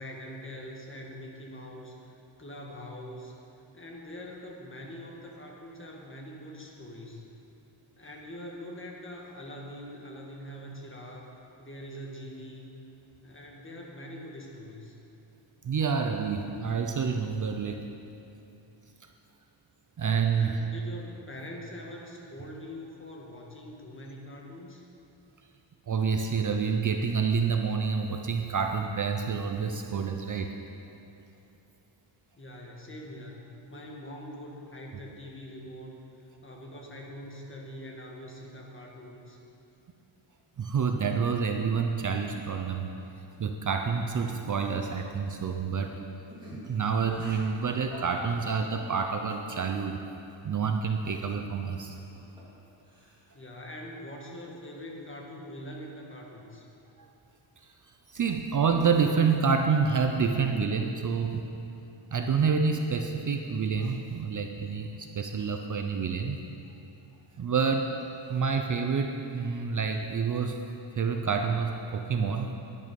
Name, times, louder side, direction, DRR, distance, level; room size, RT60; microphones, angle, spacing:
voice 1, 0.0-3.4 3.7-7.2 8.0-11.3 11.6-12.7 13.2-15.0 20.3-24.8 32.4-39.4 53.3-56.6, equal, 25° left, -1 dB, 1.5 m, -43 dB
voice 2, 15.6-17.8 20.0-20.6 25.9-30.5 40.6-42.9 43.4-46.0 46.5-50.0 50.4-52.0 57.0-57.1 57.6-57.7 58.1-61.4 62.1-66.4 67.4-68.0 68.3-70.6 71.0-72.5, right 5 dB, 40° right, 4 dB, 0.6 m, -28 dB
Laughter, 46.3-49.0 51.8-52.6 52.9-53.4, equal, 10° right, 2.6 m, -46 dB
10.5 x 9.6 x 5.2 m, 2.7 s
wide cardioid pair, 155°, 47 cm